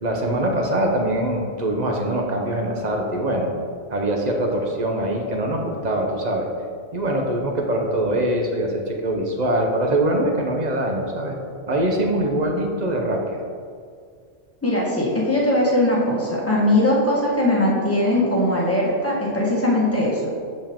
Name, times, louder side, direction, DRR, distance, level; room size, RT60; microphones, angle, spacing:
voice 1, 0.0-3.5 3.9-6.5 6.9-11.4 11.7-13.4, right 1 dB, 40° right, 1 dB, 0.8 m, -23 dB
voice 2, 14.6-20.2, left 1 dB, 10° left, -5 dB, 1.3 m, -20 dB
7.1 x 5.3 x 3.6 m, 2.1 s
omnidirectional pair, 1.3 m